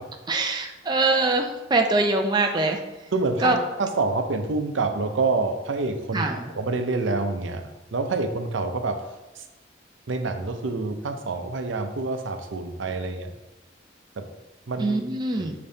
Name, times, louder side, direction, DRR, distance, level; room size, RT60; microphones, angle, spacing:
voice 1, 0.3-2.8 3.4-3.6 6.1-6.4 14.8-15.5, right 2 dB, 25° right, 3 dB, 0.4 m, -23 dB
voice 2, 3.1-7.6 7.9-9.0 9.4-9.5 10.1-13.3 14.2-14.3 14.7-15.0 15.4-15.5, right 3 dB, 90° right, 6 dB, 0.6 m, -27 dB
6.7 x 5.2 x 2.7 m, 1.0 s
head